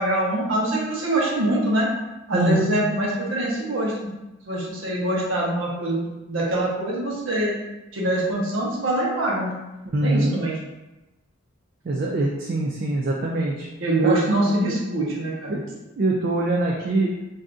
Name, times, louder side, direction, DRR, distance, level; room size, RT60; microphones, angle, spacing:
voice 1, 0.0-1.9 2.3-4.1 4.5-7.5 7.9-9.6 10.0-10.6 13.8-15.6, right 1 dB, 80° right, -4 dB, 0.9 m, -24 dB
voice 2, 2.3-2.7 9.9-10.4 11.8-13.7 14.0-14.5 15.5-15.6 16.0-17.1, right 2 dB, 45° right, -2 dB, 0.3 m, -23 dB
2.6 x 2.4 x 3.5 m, 1.0 s
head